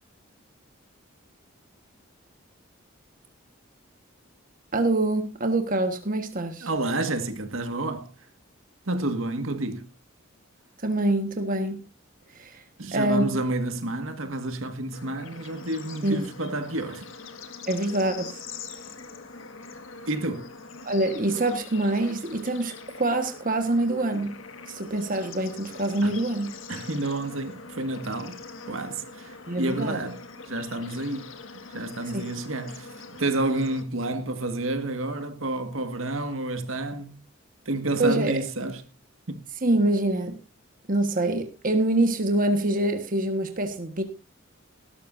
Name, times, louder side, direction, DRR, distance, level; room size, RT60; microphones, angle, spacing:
voice 1, 4.7-6.7 10.8-11.8 12.4-12.6 12.9-13.4 16.0-16.3 17.7-18.3 20.8-24.4 24.7-26.6 29.5-30.0 32.1-32.2 38.0-38.3 39.6-40.4 40.9-44.0, right 1 dB, 40° right, 1.5 m, -25 dB
voice 2, 6.6-8.1 8.9-9.9 12.8-17.1 20.1-20.5 26.0-26.1 26.7-28.4 28.7-30.2 30.5-31.3 31.5-37.2 37.7-38.8 39.3-39.4, right 2 dB, 80° right, 1.9 m, -30 dB
Bird / Insect / Frog, 14.9-33.8, left 4 dB, 70° left, 1.8 m, -43 dB
18.5 x 12.0 x 2.7 m
head